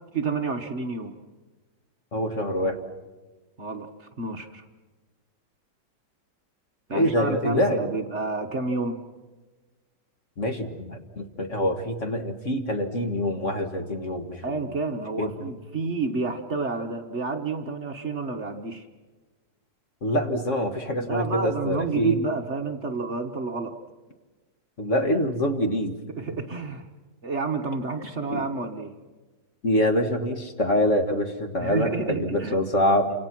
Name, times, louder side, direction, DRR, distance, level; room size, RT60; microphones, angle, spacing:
voice 1, 0.1-1.1 3.6-4.6 6.9-9.0 14.4-18.9 21.1-23.8 26.1-26.9 27.2-28.9 31.6-32.6, right 4 dB, 45° right, 5 dB, 1.4 m, -30 dB
voice 2, 2.1-2.8 6.9-7.8 10.4-14.6 15.2-15.5 20.0-22.2 24.8-25.9 28.3-28.5 29.6-33.1, left 1 dB, 45° left, 5 dB, 1.9 m, -25 dB
28.5 x 26.0 x 6.1 m, 1.3 s
omnidirectional pair, 1.9 m